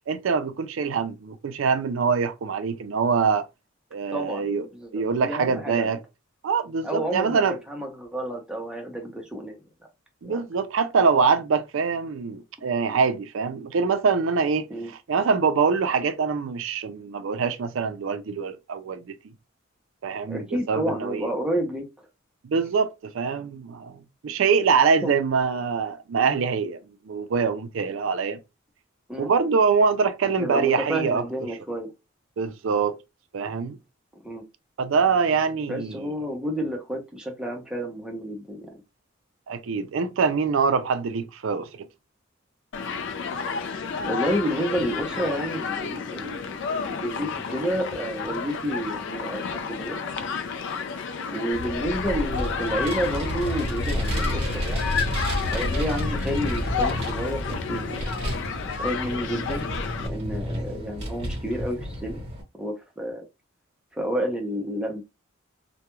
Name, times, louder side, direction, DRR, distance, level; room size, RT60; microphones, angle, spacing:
voice 1, 0.1-3.4 3.9-4.7 4.9-6.0 6.4-7.6 10.2-19.2 20.0-21.3 22.4-26.8 27.0-28.4 29.2-31.2 32.4-33.0 33.3-33.8 34.8-36.1 39.5-41.7, right 5 dB, 65° right, 0.4 m, -24 dB
voice 2, 4.1-5.9 6.8-9.6 10.2-10.4 14.7-14.9 20.3-21.9 25.0-25.2 29.1-29.3 30.4-31.9 34.2-34.4 35.7-38.8 44.0-46.4 46.8-50.0 51.3-55.0 55.4-58.1 58.8-59.7 60.0-62.2 62.6-63.2 63.9-65.0, equal, 5° right, 0.6 m, -30 dB
Human group actions, 42.7-60.1, left 5 dB, 60° left, 0.4 m, -31 dB
Vehicle, 51.5-62.4, equal, 30° right, 1.1 m, -30 dB
2.3 x 2.1 x 3.0 m
head